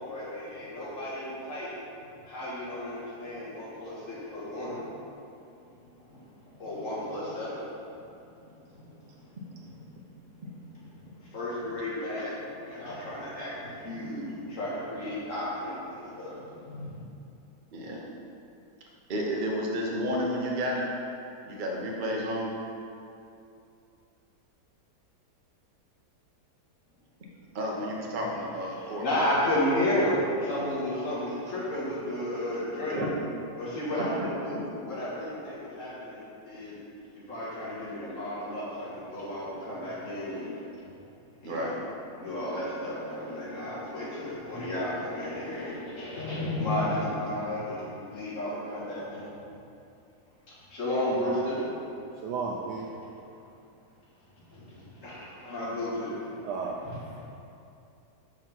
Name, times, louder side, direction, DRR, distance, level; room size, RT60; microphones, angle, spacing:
voice 1, 0.0-1.7 2.3-5.1 5.6-8.0 8.4-9.7 10.3-17.0 28.7-33.0 33.6-34.5 34.9-36.8 37.1-40.8 41.4-41.8 42.1-49.3 50.5-51.7 54.5-56.3 56.8-57.0, left 1 dB, 50° left, -8 dB, 2.0 m, -33 dB
voice 2, 17.7-18.0 19.1-20.9 21.5-22.5 27.5-29.1 32.9-33.1 33.9-34.3 41.4-41.8, equal, 40° right, -2 dB, 0.8 m, -31 dB
voice 3, 52.1-52.9 53.2-53.3 56.4-57.2, right 4 dB, 90° right, -2 dB, 1.2 m, -35 dB
4.9 x 4.6 x 5.8 m, 2.6 s
omnidirectional pair, 1.7 m